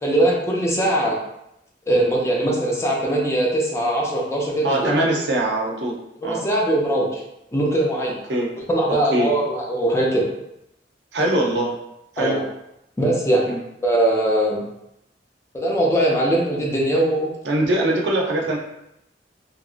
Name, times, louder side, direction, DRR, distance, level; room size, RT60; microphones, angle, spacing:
voice 1, 0.0-1.2 1.9-4.9 6.2-7.2 7.5-8.2 8.7-10.3 12.2-12.4 13.0-13.5 13.8-14.6 15.5-17.3, right 1 dB, 15° left, -3 dB, 0.5 m, -21 dB
voice 2, 4.6-6.0 6.2-6.4 8.3-8.5 8.9-9.3 11.1-11.7 12.1-12.4 13.5-13.6 17.4-18.6, right 1 dB, 70° right, -1 dB, 0.5 m, -22 dB
2.8 x 2.5 x 2.5 m, 0.82 s
head